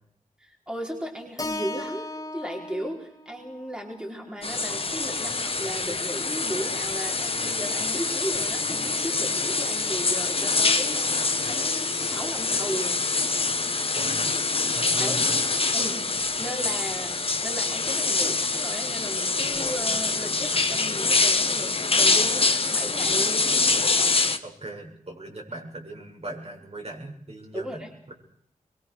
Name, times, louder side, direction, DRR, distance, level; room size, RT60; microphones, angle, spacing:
voice 1, 0.4-13.0 15.0-15.2 15.7-16.0 16.4-23.5 27.5-27.9, equal, 5° right, 0 dB, 4.7 m, -35 dB
Keyboard (musical), 1.4-5.6, left 2 dB, 25° left, 2.1 m, -38 dB
sound 1, 4.4-24.4, left 3 dB, 45° left, 1.7 m, -25 dB
voice 2, 14.0-14.3 14.7-15.4 24.4-28.1, right 2 dB, 50° right, 0 dB, 7.5 m, -39 dB
23.5 x 23.0 x 6.5 m, 0.68 s
wide cardioid pair, 80°, 14 cm